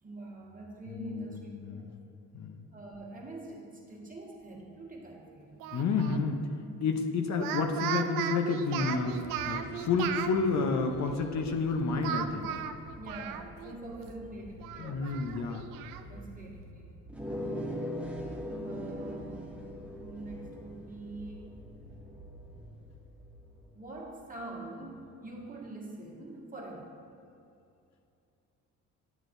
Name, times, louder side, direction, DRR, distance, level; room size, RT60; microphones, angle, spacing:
voice 1, 0.0-1.9 2.7-5.9 13.0-15.3 16.0-16.9 18.6-19.5 20.0-21.6 23.7-26.9, right 2 dB, 25° right, -2 dB, 1.5 m, -45 dB
voice 2, 0.9-1.9 2.3-2.6 5.7-6.4 6.8-12.5 14.8-15.7, left 4 dB, 55° left, 5 dB, 0.7 m, -30 dB
Speech, 5.6-6.2 7.3-10.3 12.0-13.8 14.1-14.2 14.6-16.0, right 9 dB, 85° right, 0.5 m, -36 dB
sound 1, 9.1-24.5 25.3-25.4, right 1 dB, 80° left, 1.5 m, -51 dB
sound 2, 17.1-22.4, equal, 5° right, 1.0 m, -40 dB
9.3 x 7.9 x 2.6 m, 2.6 s
cardioid pair, 80°, 33 cm